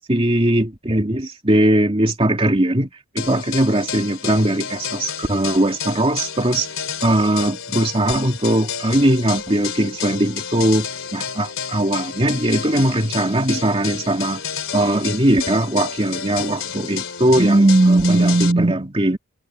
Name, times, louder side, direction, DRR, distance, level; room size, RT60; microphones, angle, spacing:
voice 1, 0.1-2.9 3.1-6.7 7.0-19.2, right 1 dB, 25° right, 2.5 m, -19 dB
sound 1, 3.2-18.5, left 7 dB, 60° left, 5.0 m, -31 dB
head